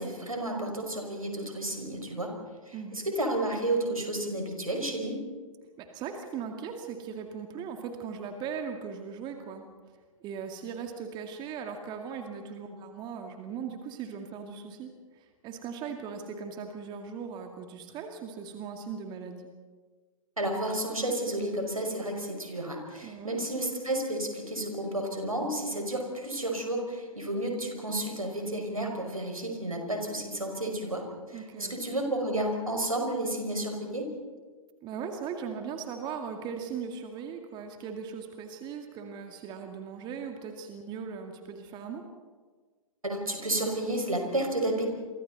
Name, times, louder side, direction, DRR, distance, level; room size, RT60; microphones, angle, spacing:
voice 1, 0.0-2.4 2.7-5.2 20.4-34.1 43.0-44.9, right 1 dB, 85° right, 2 dB, 5.6 m, -31 dB
voice 2, 5.8-9.6 10.2-19.4 23.0-23.5 31.3-31.8 34.8-42.0, right 6 dB, 25° right, 4 dB, 2.1 m, -39 dB
29.0 x 24.5 x 4.1 m, 1.5 s
figure-of-eight pair, 115°, 17 cm